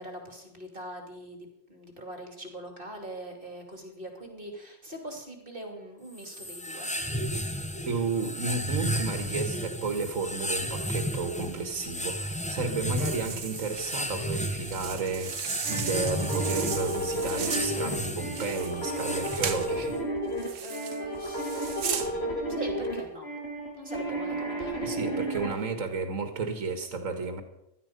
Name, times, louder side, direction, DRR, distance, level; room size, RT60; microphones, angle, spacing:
voice 1, 0.0-6.9 20.6-23.3 23.7-24.8, right 1 dB, 45° right, 2 dB, 3.1 m, -42 dB
sound 1, 6.1-20.0, equal, 5° left, 0.8 m, -33 dB
voice 2, 7.9-15.4 15.7-20.0 24.8-27.4, right 4 dB, 90° right, 7 dB, 1.9 m, -32 dB
sound 2, 13.0-19.7 20.4-21.0 21.4-22.1, right 8 dB, 75° right, 1.3 m, -36 dB
sound 3, 15.6-25.5, right 1 dB, 55° left, 3.1 m, -32 dB
16.0 x 12.5 x 5.2 m, 0.83 s
omnidirectional pair, 1.3 m